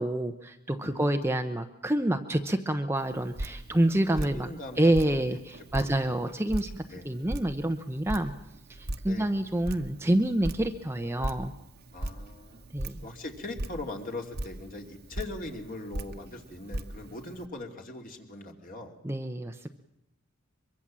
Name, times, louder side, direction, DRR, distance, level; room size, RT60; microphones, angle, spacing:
voice 1, 0.0-4.5 4.8-8.3 8.8-11.5 12.7-13.0 19.0-19.7, right 1 dB, 10° right, 6 dB, 0.8 m, -28 dB
voice 2, 0.8-1.4 4.3-5.2 5.7-6.2 6.9-7.1 9.0-9.3 11.9-12.6 13.0-18.9, left 2 dB, 40° left, 3 dB, 2.7 m, -41 dB
Drip, 3.0-17.5, right 1 dB, 50° right, 1.3 m, -39 dB
23.5 x 23.5 x 7.5 m, 0.85 s
head